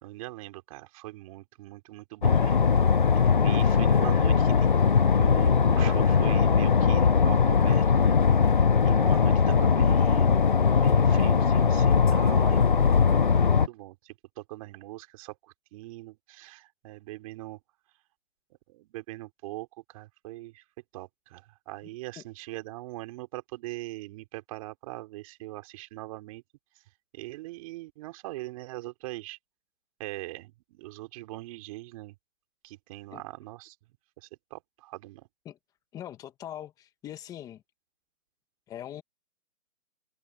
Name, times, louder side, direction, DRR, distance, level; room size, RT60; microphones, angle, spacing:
voice 1, 0.0-2.6 3.3-8.2 8.8-10.3 10.8-17.6 18.7-20.6 20.9-26.4 27.1-29.4 30.0-32.1 32.6-33.7 34.2-35.2, right 19 dB, 25° right, 3.3 m, -41 dB
sound 1, 2.2-13.7, left 6 dB, 40° left, 0.5 m, -21 dB
voice 2, 35.9-37.6 38.7-39.0, left 11 dB, 10° left, 1.6 m, -41 dB
hypercardioid pair, 160°, 42 cm